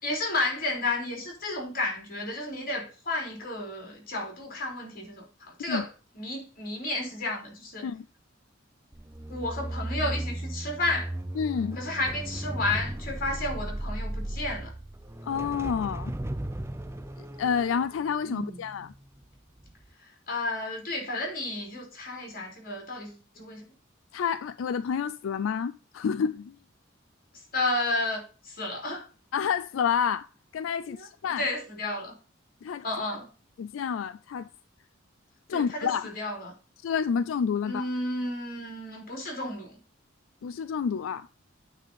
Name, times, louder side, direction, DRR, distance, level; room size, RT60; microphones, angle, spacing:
voice 1, 0.0-5.9 6.2-7.9 9.3-11.1 11.8-14.7 18.2-18.5 20.3-23.7 27.5-29.1 30.8-31.1 31.4-32.1 32.8-33.3 35.5-36.5 37.6-39.7, left 2 dB, 50° left, 3.6 m, -32 dB
sound 1, 8.9-19.2 19.6-19.9, right 1 dB, 15° right, 0.5 m, -36 dB
voice 2, 11.4-11.8 15.2-16.1 17.2-18.9 24.1-26.6 29.3-30.3 30.5-31.5 32.6-32.8 33.6-34.5 35.5-36.1 36.8-37.9 40.4-41.3, left 7 dB, 85° left, 0.3 m, -29 dB
9.0 x 4.2 x 5.3 m
head